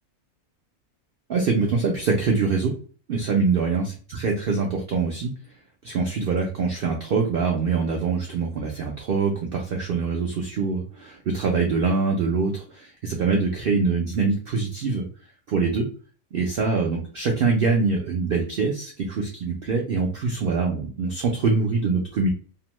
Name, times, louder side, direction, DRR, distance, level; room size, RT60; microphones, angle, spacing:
voice 1, 1.3-2.7 3.1-3.8 4.1-5.3 5.8-15.1 15.5-15.9 16.3-22.3, right 4 dB, 85° right, 1 dB, 0.5 m, -24 dB
2.6 x 2.1 x 2.9 m, 0.39 s
omnidirectional pair, 1.5 m